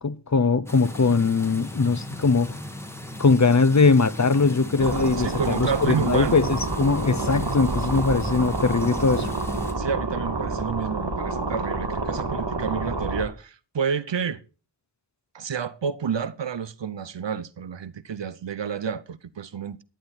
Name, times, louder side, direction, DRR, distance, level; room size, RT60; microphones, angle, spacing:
voice 1, 0.0-2.5 3.2-5.3 5.6-9.3, left 4 dB, 40° left, 0.9 m, -21 dB
sound 1, 0.7-9.7, left 1 dB, 5° left, 2.4 m, -37 dB
sound 2, 4.8-13.2, right 3 dB, 65° right, 2.1 m, -28 dB
voice 2, 5.2-6.5 9.8-14.4 15.3-19.8, right 6 dB, 90° right, 0.8 m, -30 dB
11.5 x 10.0 x 4.1 m
wide cardioid pair, 50°, 42 cm